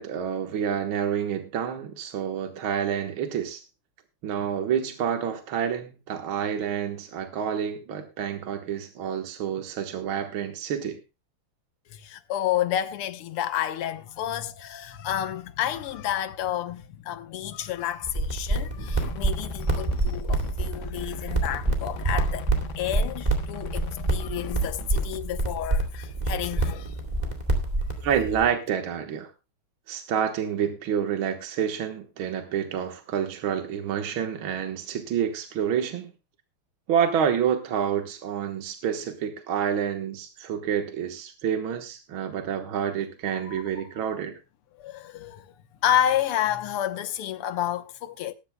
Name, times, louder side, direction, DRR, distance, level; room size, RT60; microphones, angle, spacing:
voice 1, 0.0-3.6 4.2-11.0 28.0-29.3 29.9-36.1 36.9-44.4, right 8 dB, 70° right, 2.1 m, -28 dB
voice 2, 11.9-22.5 22.8-27.0 43.4-43.8 44.8-45.5 45.8-48.3, left 11 dB, 90° left, 1.9 m, -30 dB
sound 1, 18.0-28.4, right 2 dB, 20° right, 2.3 m, -27 dB
sound 2, 19.0-25.2, left 8 dB, 65° left, 1.8 m, -41 dB
19.5 x 12.0 x 2.2 m
omnidirectional pair, 2.4 m